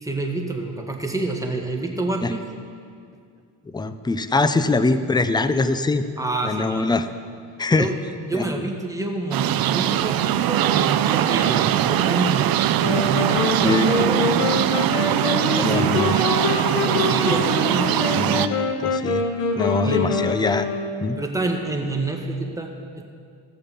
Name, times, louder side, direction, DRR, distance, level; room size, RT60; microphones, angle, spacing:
voice 1, 0.0-2.4 6.2-6.9 7.8-8.0 8.3-12.6 12.8-14.7 15.2-18.2 19.8-20.1 21.2-23.0, right 2 dB, 5° right, 1 dB, 1.7 m, -28 dB
voice 2, 3.7-6.1 6.4-7.1 7.6-7.9 8.3-8.5 13.6-13.9 15.6-16.1 18.1-19.2 19.5-20.7 21.0-21.2, left 3 dB, 10° left, 11 dB, 0.5 m, -23 dB
sound 1, 9.3-18.5, right 12 dB, 45° right, 0.5 m, -21 dB
sound 2, 12.8-21.2, left 4 dB, 85° left, 1.3 m, -25 dB
16.0 x 6.7 x 5.6 m, 2.2 s
supercardioid pair, 75°, 50 cm